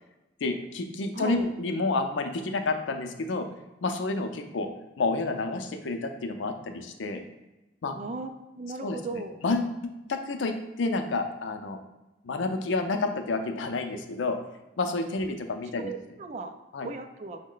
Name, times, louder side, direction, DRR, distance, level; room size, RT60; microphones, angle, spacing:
voice 1, 0.4-3.5 3.8-4.7 5.0-7.2 7.8-7.9 8.8-9.0 9.4-11.8 12.2-14.4 14.8-15.9 16.7-16.9, left 3 dB, 75° left, 6 dB, 0.5 m, -29 dB
voice 2, 1.1-1.5 8.0-9.4 15.8-16.5 16.8-17.4, right 3 dB, 40° right, 7 dB, 0.3 m, -37 dB
5.3 x 2.1 x 3.8 m, 1.0 s
head